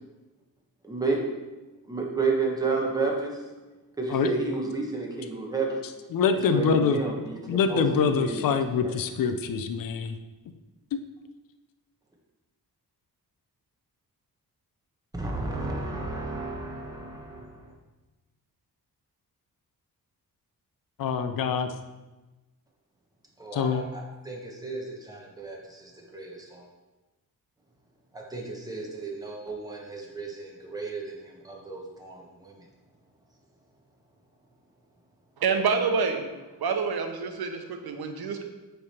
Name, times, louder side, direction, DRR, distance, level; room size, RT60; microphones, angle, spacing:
voice 1, 0.8-1.2 1.9-3.3 4.0-5.8 6.3-7.4 7.7-7.8 8.2-8.4 15.1-17.6 23.4-26.6 28.1-32.6, right 3 dB, 10° right, -2 dB, 1.1 m, -32 dB
voice 2, 6.1-10.2 21.0-21.7 23.5-23.8, left 6 dB, 60° left, 8 dB, 0.5 m, -25 dB
voice 3, 35.4-36.2 36.6-38.4, right 5 dB, 80° right, 5 dB, 0.9 m, -27 dB
8.4 x 3.4 x 4.3 m, 1.2 s
wide cardioid pair, 140°, 37 cm